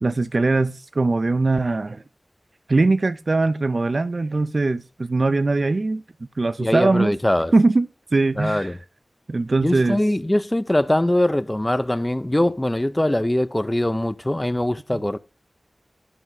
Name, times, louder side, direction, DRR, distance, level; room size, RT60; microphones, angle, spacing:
voice 1, 0.0-2.0 2.7-6.0 6.4-7.2 7.5-8.7 9.3-10.0 14.9-15.0, right 3 dB, 65° right, 0.4 m, -21 dB
voice 2, 6.6-7.5 8.4-8.8 9.6-15.2, left 1 dB, 20° left, 0.5 m, -22 dB
11.0 x 3.9 x 6.1 m
wide cardioid pair, 70°, 0 cm